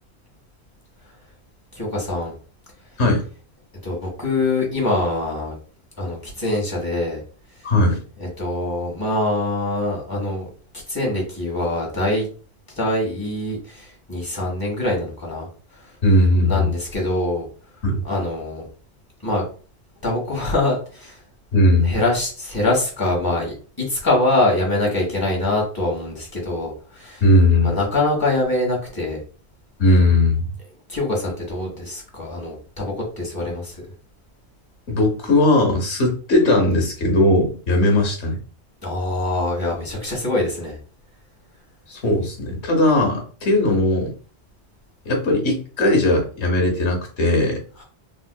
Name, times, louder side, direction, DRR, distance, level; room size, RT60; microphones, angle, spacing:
voice 1, 1.7-2.3 3.8-5.6 6.0-7.2 8.2-10.5 10.9-12.3 12.8-15.5 15.7-15.9 16.4-17.5 18.0-18.7 19.2-19.4 20.0-21.2 21.8-27.2 27.6-29.2 30.9-33.8 38.8-40.8 47.8-47.9, left 2 dB, 20° left, -3 dB, 1.3 m, -24 dB
voice 2, 7.6-8.0 16.0-16.7 17.8-18.0 21.5-22.0 27.2-27.8 29.8-30.5 34.9-38.4 41.9-44.1 45.0-47.6, left 1 dB, 80° left, 2 dB, 1.3 m, -18 dB
3.8 x 2.6 x 2.2 m, 0.40 s
omnidirectional pair, 1.1 m